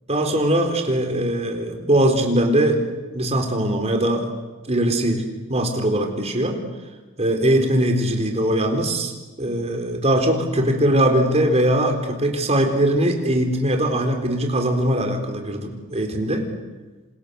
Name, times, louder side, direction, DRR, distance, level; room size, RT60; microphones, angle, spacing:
voice 1, 0.1-2.9 3.1-4.3 4.7-5.2 5.5-6.6 7.2-9.1 9.4-16.5, right 1 dB, 30° right, 4 dB, 4.0 m, -21 dB
28.0 x 27.0 x 7.0 m, 1.2 s
head